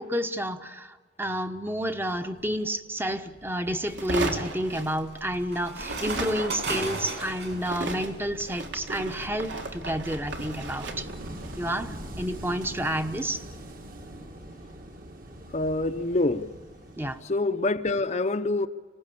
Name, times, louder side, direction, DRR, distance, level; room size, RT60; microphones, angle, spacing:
voice 1, 0.0-11.1 11.6-13.4 17.0-17.2, equal, 10° right, 1.0 m, -30 dB
sound 1, 2.1-2.5 3.1-7.7, right 3 dB, 65° right, 7.6 m, -36 dB
sound 2, 3.9-5.5 5.8-13.0, right 2 dB, 85° right, 3.1 m, -36 dB
Wind / Waves surf, 7.2-17.2, right 1 dB, 50° right, 2.2 m, -43 dB
voice 2, 15.5-16.5 17.2-18.7, left 2 dB, 40° left, 0.8 m, -26 dB
26.5 x 18.5 x 8.6 m
head